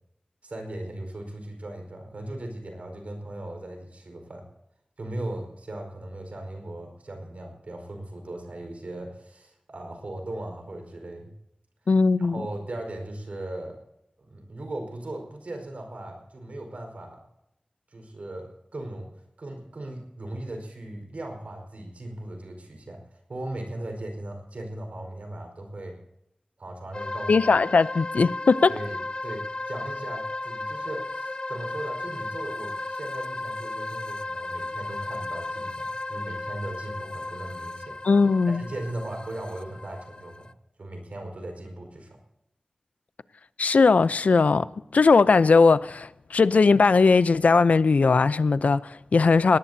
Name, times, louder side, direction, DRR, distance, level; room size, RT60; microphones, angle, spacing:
voice 1, 0.4-4.4 5.0-11.3 11.8-13.8 14.2-17.2 17.9-19.1 19.4-26.0 26.6-27.4 28.7-38.0 38.5-40.5 40.8-42.2, right 1 dB, 75° right, 4.8 m, -38 dB
voice 2, 11.9-12.4 27.3-28.7 38.0-38.6 43.6-44.7 44.9-49.6, left 4 dB, 85° left, 0.6 m, -19 dB
sound 1, 26.9-40.5, left 2 dB, 40° left, 0.6 m, -35 dB
20.5 x 18.5 x 2.8 m
wide cardioid pair, 80°, 2 cm